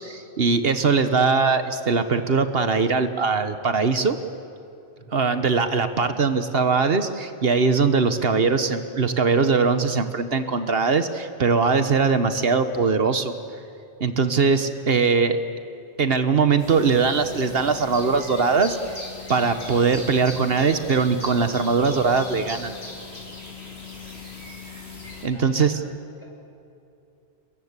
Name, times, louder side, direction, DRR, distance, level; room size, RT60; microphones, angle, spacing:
voice 1, 0.0-4.2 5.1-13.3 14.0-15.4 16.0-19.0 19.3-22.7 25.2-25.7, right 5 dB, 70° right, 9 dB, 1.3 m, -21 dB
voice 2, 4.9-5.3 14.3-14.7 23.6-24.4 25.3-26.3, equal, 30° left, 0 dB, 5.9 m, -49 dB
sound 1, 16.6-25.3, left 3 dB, 85° left, 4.6 m, -39 dB
30.0 x 22.0 x 8.2 m, 2.7 s
omnidirectional pair, 1.1 m